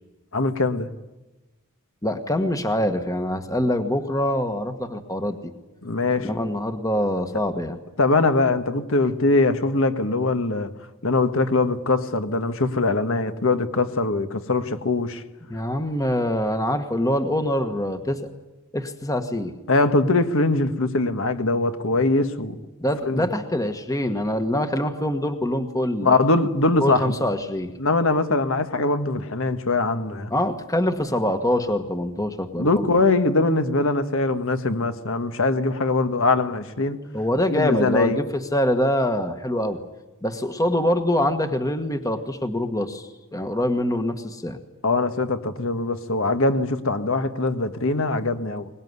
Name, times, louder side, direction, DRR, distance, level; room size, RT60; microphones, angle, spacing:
voice 1, 0.3-0.9 5.8-6.3 8.0-10.7 11.0-15.2 19.7-22.6 23.1-23.3 26.0-27.2 27.8-30.3 32.6-37.0 37.5-38.2 44.8-48.7, left 3 dB, 65° left, 1.5 m, -22 dB
voice 2, 2.0-5.4 6.2-7.8 15.5-18.3 18.7-19.5 22.8-26.2 26.8-27.7 30.3-33.0 37.1-38.2 38.5-39.8 40.2-44.6, left 1 dB, 15° left, 1.4 m, -24 dB
22.5 x 20.5 x 9.6 m
head